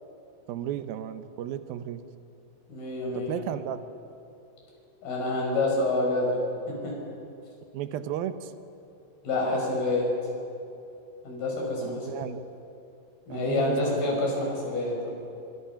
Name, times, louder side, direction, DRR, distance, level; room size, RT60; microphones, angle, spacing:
voice 1, 0.5-2.0 3.1-3.8 7.7-8.5 11.8-12.4 13.3-14.2, right 10 dB, 80° right, 10 dB, 2.7 m, -34 dB
voice 2, 2.7-3.4 5.0-6.4 6.7-7.0 9.2-10.1 11.2-12.3 13.3-15.1, left 2 dB, 80° left, -1 dB, 7.0 m, -28 dB
27.0 x 24.5 x 5.8 m, 2.7 s
omnidirectional pair, 4.2 m